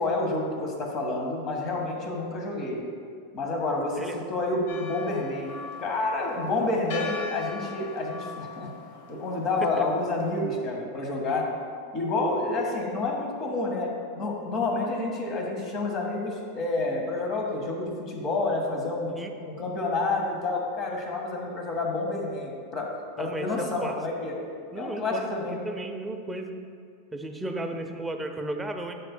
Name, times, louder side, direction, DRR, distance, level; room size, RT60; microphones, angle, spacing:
voice 1, 0.0-2.8 3.3-5.5 5.8-8.7 9.1-11.5 11.9-13.9 14.2-19.1 19.5-22.9 23.2-24.3 24.7-25.6, left 2 dB, 35° left, 0 dB, 1.5 m, -29 dB
Church bell, 4.7-10.4, left 5 dB, 70° left, 1.0 m, -40 dB
voice 2, 23.2-24.0 24.7-25.3 25.6-26.5 27.1-28.9, right 2 dB, 10° right, 4 dB, 0.6 m, -34 dB
10.5 x 7.1 x 2.2 m, 2.2 s
supercardioid pair, 135°, 0 cm